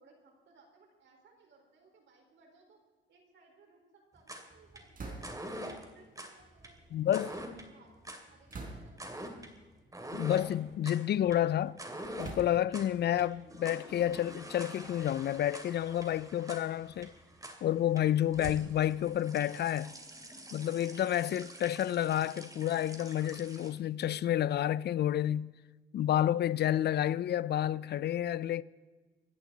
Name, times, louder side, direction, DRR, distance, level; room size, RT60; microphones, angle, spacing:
voice 1, 0.0-2.8 3.1-9.3, right 4 dB, 65° right, 4.5 m, -63 dB
sound 1, 4.2-23.7, right 1 dB, 15° right, 2.6 m, -46 dB
sound 2, 4.9-5.6 6.5-7.6 8.5-9.2 10.0-10.2 10.7-11.4 12.2-12.9 13.7-15.6, right 3 dB, 45° right, 3.9 m, -47 dB
voice 2, 6.9-7.3 10.1-11.8 12.2-17.1 17.6-20.0 20.5-25.5 25.9-28.6, left 11 dB, 55° left, 0.5 m, -30 dB
25.5 x 10.5 x 4.0 m
cardioid pair, 90°, 20 cm